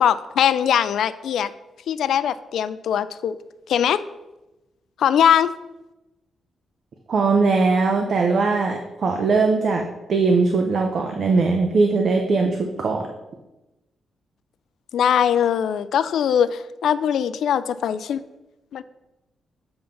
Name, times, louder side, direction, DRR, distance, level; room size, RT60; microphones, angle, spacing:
voice 1, 0.0-1.5 1.9-3.4 3.7-4.0 5.0-5.5 14.9-18.2 18.7-18.8, left 9 dB, 75° left, 14 dB, 0.3 m, -21 dB
voice 2, 7.1-13.1, right 4 dB, 45° right, 2 dB, 0.6 m, -20 dB
6.9 x 3.8 x 5.7 m, 1.0 s
wide cardioid pair, 165°, 0 cm